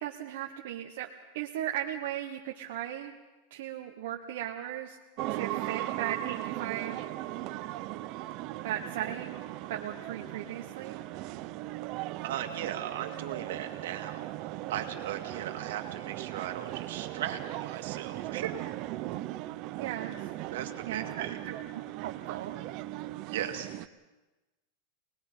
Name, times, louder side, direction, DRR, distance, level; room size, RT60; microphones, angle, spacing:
voice 1, 0.0-1.1 1.3-3.1 3.5-5.0 5.3-7.1 8.6-9.4 9.7-11.0 19.8-20.2 20.9-21.6 22.0-22.6, right 11 dB, 60° right, 1 dB, 1.2 m, -37 dB
sound 1, 5.2-23.9, right 16 dB, 35° right, 0.6 m, -38 dB
voice 2, 12.2-18.5 20.5-21.4 23.3-23.7, right 10 dB, 75° right, 5 dB, 2.1 m, -37 dB
24.0 x 20.0 x 5.6 m, 1.1 s
supercardioid pair, 170°, 0 cm